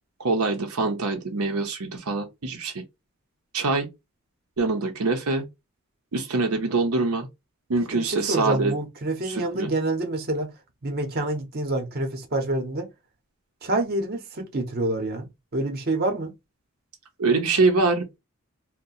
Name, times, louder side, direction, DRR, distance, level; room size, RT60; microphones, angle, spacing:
voice 1, 0.2-2.8 3.5-3.9 4.6-5.4 6.1-7.3 7.7-8.7 9.2-9.7 17.2-18.2, right 3 dB, 80° right, 0.7 m, -24 dB
voice 2, 7.9-10.5 10.8-12.9 13.6-15.3 15.5-16.3, right 2 dB, 45° right, 0.8 m, -27 dB
2.6 x 2.1 x 4.0 m
head